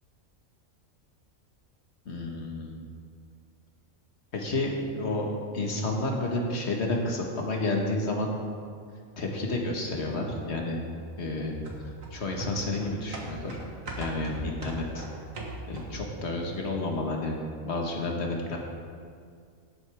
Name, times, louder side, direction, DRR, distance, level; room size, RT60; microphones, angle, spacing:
voice 1, 2.1-2.8 4.3-5.3 5.5-8.3 9.2-10.8 11.2-11.6 12.1-13.6 14.0-15.1 15.7-17.4 17.6-18.6, left 2 dB, 50° left, 0 dB, 1.7 m, -30 dB
sound 1, 11.6-16.1 16.5-16.6, right 1 dB, 70° right, 1.9 m, -39 dB
17.5 x 8.1 x 3.5 m, 2.2 s
omnidirectional pair, 1.4 m